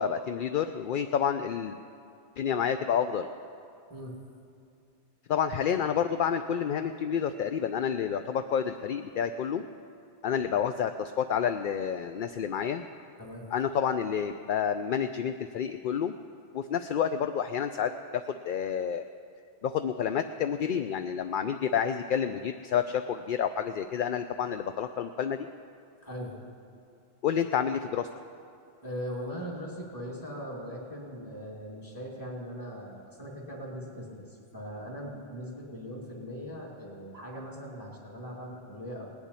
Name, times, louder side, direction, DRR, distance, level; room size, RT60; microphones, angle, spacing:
voice 1, 0.0-1.8 2.4-3.3 5.3-9.6 10.2-12.8 13.5-16.1 16.5-19.0 19.6-25.5 27.2-28.1, left 8 dB, 60° left, 8 dB, 0.6 m, -29 dB
voice 2, 26.0-26.4 28.8-39.1, equal, 15° left, -3 dB, 2.7 m, -40 dB
18.5 x 7.2 x 9.6 m, 2.5 s
omnidirectional pair, 1.2 m